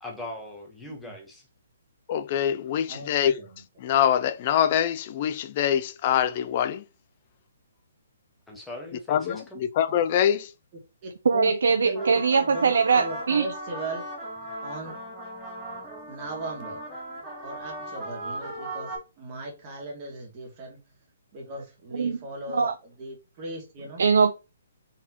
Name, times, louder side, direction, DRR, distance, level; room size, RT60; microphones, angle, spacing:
voice 1, 0.0-1.4 8.5-9.6, left 2 dB, 5° left, 1.0 m, -39 dB
voice 2, 2.1-3.4 3.8-6.8 9.1-10.5, left 9 dB, 35° left, 0.4 m, -24 dB
voice 3, 2.9-3.5 11.0-11.5 11.8-14.0 14.6-15.0 16.1-16.8 17.4-20.8 21.3-24.0, right 1 dB, 30° right, 1.8 m, -38 dB
voice 4, 11.3-13.5 21.9-22.2 22.5-22.7 24.0-24.3, right 5 dB, 80° right, 0.4 m, -21 dB
sound 1, 11.8-19.0, right 1 dB, 10° right, 1.8 m, -37 dB
4.1 x 3.5 x 2.9 m
hypercardioid pair, 155°, 0 cm